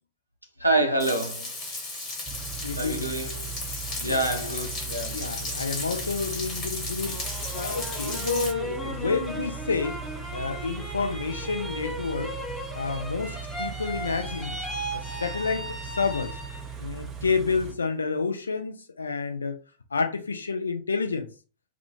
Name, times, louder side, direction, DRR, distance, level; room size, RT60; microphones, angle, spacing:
voice 1, 0.6-1.6 2.8-3.5 4.0-5.3, right 2 dB, 90° right, 0.5 m, -27 dB
Frying (food), 1.0-8.5, left 2 dB, 35° left, 1.2 m, -35 dB
Car / Idling, 2.3-17.7, right 6 dB, 25° right, 0.5 m, -39 dB
voice 2, 2.6-3.0 4.0-4.2 5.1-10.0 10.3-12.4 12.7-14.6 14.9-16.4 16.8-19.6 19.9-21.3, left 4 dB, 75° left, 0.4 m, -29 dB
sound 1, 7.0-16.8 17.2-17.9, equal, 15° left, 0.7 m, -37 dB
2.4 x 2.2 x 2.8 m
figure-of-eight pair, 90°, 0 cm